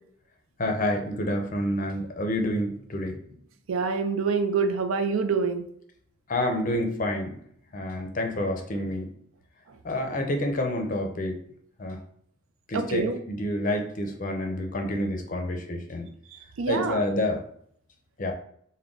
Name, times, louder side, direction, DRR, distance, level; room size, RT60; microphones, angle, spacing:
voice 1, 0.6-3.2 6.3-7.4 7.7-9.1 9.8-11.4 11.8-12.0 12.7-16.1 16.7-17.4 18.2-18.3, left 1 dB, 40° left, 3 dB, 0.5 m, -28 dB
voice 2, 3.7-5.6 12.7-13.2 16.3-17.0, right 5 dB, 85° right, 8 dB, 0.4 m, -26 dB
3.6 x 2.2 x 3.7 m, 0.66 s
head